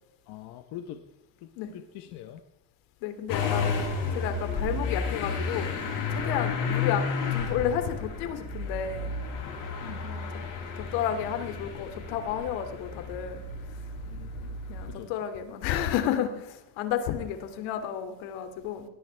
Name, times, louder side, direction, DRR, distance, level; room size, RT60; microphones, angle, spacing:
voice 1, 0.3-1.1 1.4-2.4 9.8-10.0 14.1-14.5 14.9-15.1, left 12 dB, 60° left, 6 dB, 1.2 m, -43 dB
voice 2, 3.0-3.7 4.1-5.7 6.1-7.0 7.3-9.1 10.0-10.3 10.8-13.4 14.7-18.8, left 9 dB, 85° left, 7 dB, 2.7 m, -31 dB
Motor vehicle (road) / Engine starting, 3.3-14.9, left 5 dB, 45° left, 7.5 m, -32 dB
22.5 x 18.5 x 3.5 m, 0.91 s
cardioid pair, 145°, 43 cm